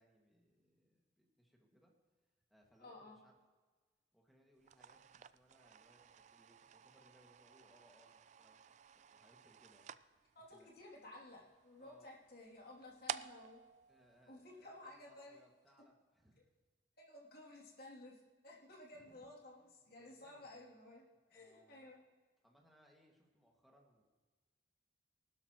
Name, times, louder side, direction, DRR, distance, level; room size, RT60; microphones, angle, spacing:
voice 1, 0.0-1.9 2.5-3.3 4.1-10.0 10.5-10.7 11.8-12.1 13.9-16.5 18.9-19.3 19.9-20.7 21.3-22.0 22.4-24.0, equal, ahead, -1 dB, 2.0 m, -70 dB
voice 2, 2.8-3.2 10.3-13.6 14.3-15.4 17.0-21.0 21.3-22.0, left 1 dB, 55° left, -3 dB, 2.9 m, -55 dB
sound 1, 4.6-15.0, right 8 dB, 40° right, 0.3 m, -53 dB
19.5 x 12.5 x 3.1 m, 1.3 s
head